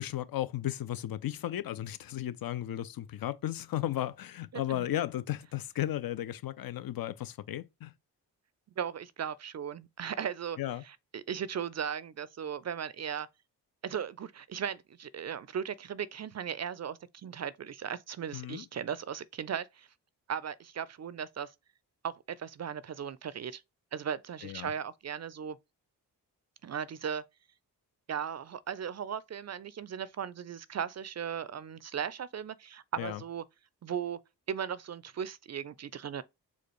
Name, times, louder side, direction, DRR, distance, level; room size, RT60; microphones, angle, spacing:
voice 1, 0.0-7.9 10.6-10.8 18.3-18.6 24.4-24.7 33.0-33.2, left 13 dB, 55° left, 0.5 m, -35 dB
voice 2, 4.5-4.9 8.8-10.6 10.9-13.3 13.8-19.9 20.3-21.5 22.0-23.6 23.9-25.6 26.6-27.2 28.1-33.4 33.8-34.2 34.5-36.2, right 8 dB, 40° right, 0.4 m, -37 dB
4.3 x 2.3 x 3.1 m
supercardioid pair, 40°, 43 cm